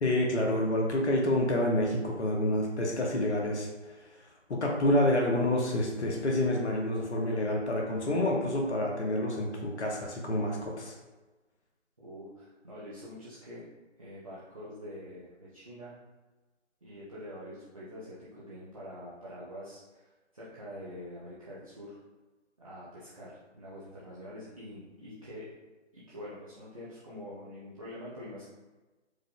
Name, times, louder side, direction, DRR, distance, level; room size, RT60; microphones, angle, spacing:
voice 1, 0.0-3.9 4.5-10.9, left 1 dB, 65° left, 0 dB, 0.9 m, -28 dB
voice 2, 12.0-13.6 14.0-15.9 16.8-22.0 22.6-25.5 25.9-28.4, equal, 30° right, -9 dB, 0.6 m, -45 dB
4.7 x 2.1 x 3.7 m, 1.2 s
figure-of-eight pair, 155°, 36 cm